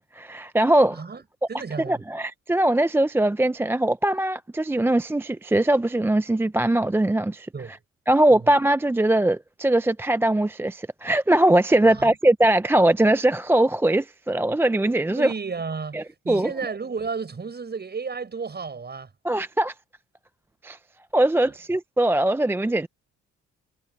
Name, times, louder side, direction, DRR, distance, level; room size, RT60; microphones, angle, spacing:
voice 1, 0.1-1.0 1.9-7.5 8.1-15.3 15.9-16.5 19.2-19.7 20.6-20.8 21.1-22.9, right 1 dB, 10° right, 0.4 m, -21 dB
voice 2, 0.9-1.2 1.5-2.0 7.5-7.7 8.3-8.5 11.8-12.2 15.1-19.1 21.4-21.5, right 5 dB, 35° right, 7.1 m, -33 dB
cardioid pair, 90°, 30 cm